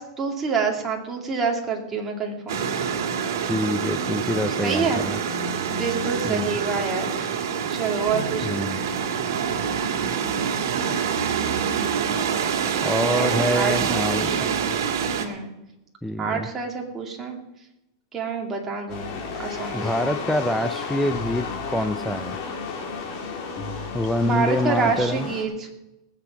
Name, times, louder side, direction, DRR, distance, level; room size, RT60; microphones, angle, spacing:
voice 1, 0.0-2.6 4.6-5.0 5.7-7.1 7.7-8.7 13.2-14.7 15.2-15.5 16.2-17.4 18.1-19.1 19.4-20.1 24.2-25.7, right 4 dB, 15° right, 0 dB, 2.3 m, -27 dB
sound 1, 2.5-15.3, right 7 dB, 65° right, 2.2 m, -26 dB
voice 2, 3.4-5.2 6.2-6.6 8.4-8.8 12.8-14.5 16.0-16.5 19.7-22.4 23.9-25.3, left 1 dB, ahead, 9 dB, 0.5 m, -26 dB
sound 2, 18.9-25.4, left 4 dB, 40° left, 2.9 m, -32 dB
19.5 x 8.2 x 5.9 m, 0.93 s
supercardioid pair, 155°, 2 cm